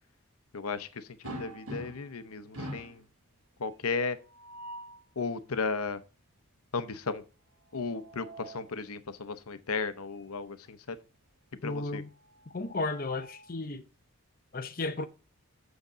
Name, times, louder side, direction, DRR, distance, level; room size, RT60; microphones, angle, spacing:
voice 1, 0.5-1.0 1.4-3.0 3.6-4.2 5.2-6.0 6.7-7.2 7.7-11.0 11.6-12.0, left 4 dB, 90° left, 0.8 m, -34 dB
sound 1, 1.2-2.2 2.5-3.0 4.2-5.0 7.7-8.7 10.1-10.3 10.7-10.8 12.3-13.5, right 1 dB, 80° right, 2.6 m, -44 dB
voice 2, 11.6-12.1 12.5-13.8 14.5-15.0, left 3 dB, 40° left, 0.7 m, -34 dB
8.1 x 6.5 x 5.0 m
head